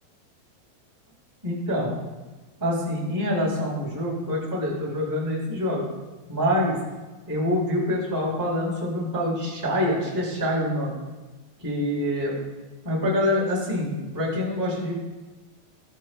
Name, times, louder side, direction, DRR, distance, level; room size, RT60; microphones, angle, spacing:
voice 1, 1.4-2.0 2.6-5.8 6.3-6.8 7.3-10.9 11.6-12.4 12.8-14.9, left 1 dB, 5° right, -6 dB, 3.8 m, -25 dB
21.5 x 11.0 x 2.3 m, 1.2 s
omnidirectional pair, 5.3 m